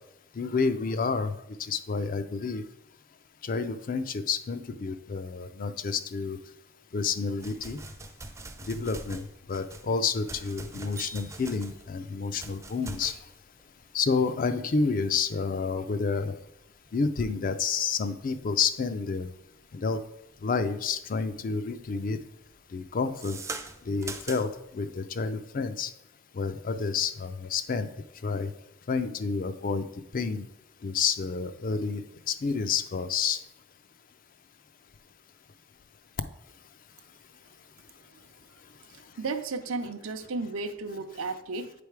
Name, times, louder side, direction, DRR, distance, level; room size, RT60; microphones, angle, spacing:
voice 1, 0.4-1.3 1.6-2.6 3.4-6.4 6.9-7.8 8.7-13.2 13.9-16.3 16.9-19.3 19.7-20.0 20.4-22.2 22.7-23.4 23.9-25.9 26.3-27.9 28.2-28.5 28.9-29.9 30.1-30.4 30.8-32.0 32.3-33.4, left 5 dB, 45° left, 11 dB, 0.4 m, -29 dB
sound 1, 7.4-20.7 21.1-21.5 21.8-24.7, right 3 dB, 15° right, 0.4 m, -43 dB
voice 2, 38.9-41.7, right 3 dB, 90° right, 9 dB, 0.6 m, -34 dB
8.7 x 3.4 x 4.7 m, 0.83 s
head